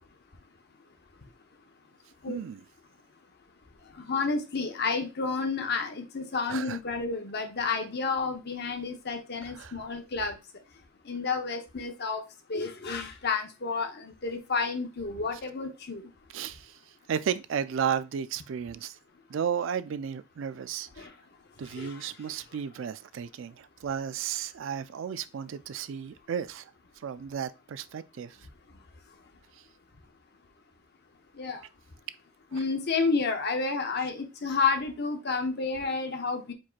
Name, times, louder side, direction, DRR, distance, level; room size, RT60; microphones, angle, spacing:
voice 1, 2.3-2.6 6.5-6.8 9.4-9.7 16.3-16.8 17.1-18.9 19.3-21.1 21.6-26.6 27.0-28.4 32.5-32.6, right 7 dB, 65° right, 0.3 m, -33 dB
voice 2, 4.0-10.4 11.1-12.2 12.5-16.0 21.0-21.1 21.8-22.0 31.4-31.6 32.5-36.5, left 4 dB, 50° left, 0.8 m, -30 dB
4.6 x 4.3 x 2.4 m
head